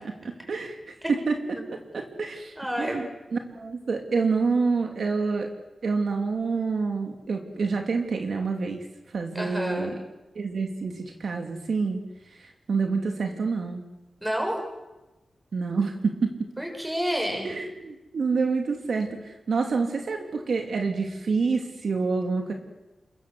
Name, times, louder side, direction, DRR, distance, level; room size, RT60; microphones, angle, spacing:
voice 1, 0.5-1.4 1.9-5.5 5.8-8.8 9.1-9.9 10.3-12.0 12.4-13.8 15.5-16.3 17.4-22.5, right 4 dB, 60° right, 3 dB, 2.9 m, -27 dB
voice 2, 2.5-3.0 9.3-9.9 14.2-14.6 16.6-17.5, equal, 5° right, 2 dB, 6.9 m, -29 dB
28.5 x 23.0 x 8.1 m, 1.0 s
wide cardioid pair, 165°, 0 cm